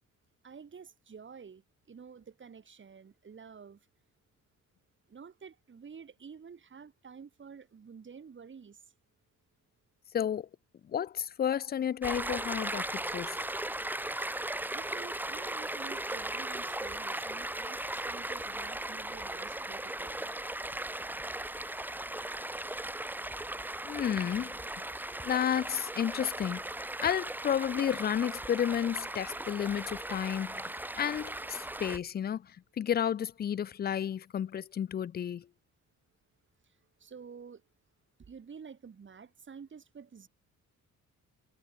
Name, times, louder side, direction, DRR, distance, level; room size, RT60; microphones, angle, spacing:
voice 1, 0.4-3.8 5.1-8.8 14.7-20.2 37.0-37.6 38.2-40.3, right 6 dB, 40° right, 4.0 m, -50 dB
voice 2, 10.1-10.5 10.9-13.4 23.8-24.6 25.2-26.6 27.0-30.6 31.0-32.4 32.8-35.4, left 9 dB, 35° left, 0.4 m, -31 dB
Stream, 12.0-32.0, right 1 dB, 5° right, 0.9 m, -37 dB
cardioid pair, 90°, 30 cm